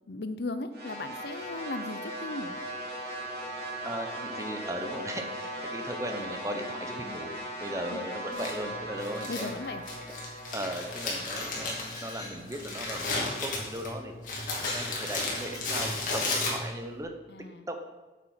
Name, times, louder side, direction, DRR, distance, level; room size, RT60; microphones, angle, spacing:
voice 1, 0.1-2.6 7.9-8.0 9.3-9.8 17.3-17.8, left 2 dB, 65° left, 11 dB, 0.6 m, -37 dB
sound 1, 0.7-13.0, right 1 dB, 65° right, 2.6 m, -39 dB
voice 2, 3.8-7.3 7.6-9.5 10.5-17.1 17.7-17.8, right 1 dB, 15° right, 5 dB, 0.9 m, -37 dB
Crumpling crinkling, 8.3-17.0, left 2 dB, 50° left, 2.3 m, -34 dB
Glass, 10.9-13.0 13.7-13.9 14.3-16.3, left 2 dB, 20° left, 3.1 m, -43 dB
8.7 x 7.3 x 5.7 m, 1.2 s
head